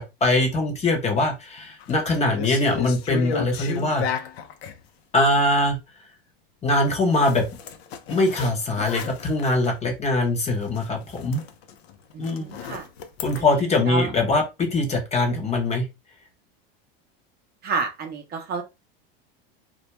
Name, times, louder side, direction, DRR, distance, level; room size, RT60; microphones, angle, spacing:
voice 1, 0.0-4.1 5.1-5.8 6.6-7.5 8.1-11.4 12.2-12.5 13.2-15.9, left 2 dB, 20° left, 2 dB, 0.6 m, -22 dB
sound 1, 1.6-2.0 2.3-4.8 7.1-9.7 10.1-10.3 10.6-13.4, left 7 dB, 85° left, 0.5 m, -34 dB
voice 2, 12.1-12.9 13.4-14.1 17.6-18.6, right 4 dB, 30° right, 3 dB, 0.5 m, -30 dB
2.2 x 2.1 x 2.8 m, 0.24 s
supercardioid pair, 115°, 30 cm